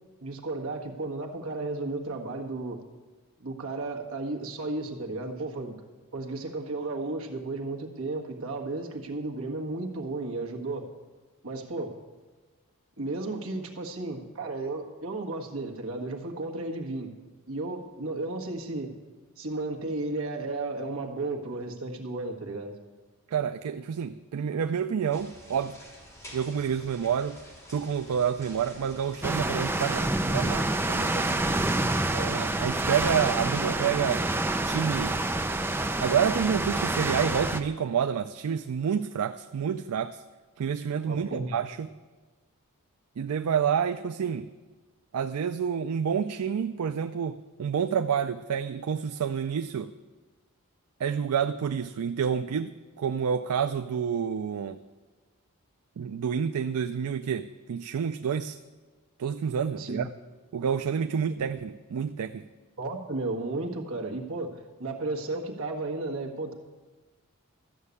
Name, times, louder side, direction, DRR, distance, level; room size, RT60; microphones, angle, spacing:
voice 1, 0.2-2.8 3.4-5.8 6.1-10.9 11.4-11.9 13.0-17.1 17.5-18.9 19.4-22.8 31.1-31.5 32.1-32.4 41.1-41.6 59.8-60.1 61.4-61.5 62.8-66.5, right 2 dB, 65° right, 2 dB, 1.5 m, -34 dB
voice 2, 23.3-25.8 26.3-27.4 27.7-31.1 32.3-34.2 34.6-35.2 36.0-40.2 40.6-41.9 43.2-44.5 45.1-49.9 51.0-54.8 56.0-58.6 59.2-60.1 60.5-62.4, right 7 dB, 80° right, 10 dB, 0.4 m, -29 dB
sound 1, 25.1-33.0, equal, 15° left, 3.5 m, -49 dB
sound 2, 29.2-37.6, right 2 dB, 10° right, 0.5 m, -27 dB
13.0 x 6.5 x 8.3 m, 1.3 s
head